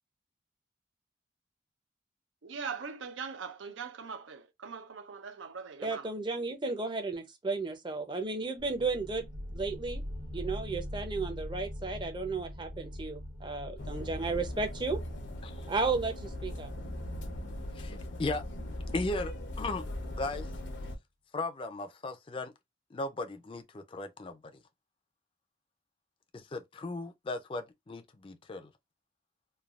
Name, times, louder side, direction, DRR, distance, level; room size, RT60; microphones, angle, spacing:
voice 1, 2.4-6.0, right 5 dB, 90° right, 0.5 m, -41 dB
voice 2, 5.8-10.0 10.3-15.0 15.7-16.7, right 3 dB, 25° right, 0.5 m, -34 dB
sound 1, 8.6-20.0, equal, 70° right, 1.2 m, -44 dB
sound 2, 13.8-21.0, left 1 dB, 85° left, 0.7 m, -39 dB
voice 3, 17.7-18.4 18.9-19.8 20.2-20.5 21.3-22.5 22.9-24.4 26.3-28.7, left 2 dB, 30° left, 0.4 m, -37 dB
3.2 x 2.3 x 2.3 m
head